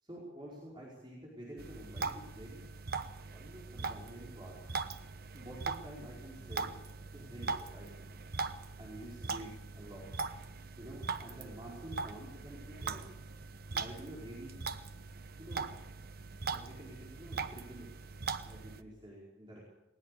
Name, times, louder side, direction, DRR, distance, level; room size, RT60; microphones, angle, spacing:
voice 1, 0.0-2.7 3.3-4.6 5.3-6.8 7.0-8.1 8.8-9.5 9.8-10.1 10.8-13.1 13.7-14.6 15.4-15.7 16.5-17.9 18.4-19.6, right 1 dB, 25° right, -5 dB, 5.2 m, -49 dB
sound 1, 1.6-18.8, right 4 dB, 55° right, 0.9 m, -41 dB
20.0 x 20.0 x 6.8 m, 0.90 s
head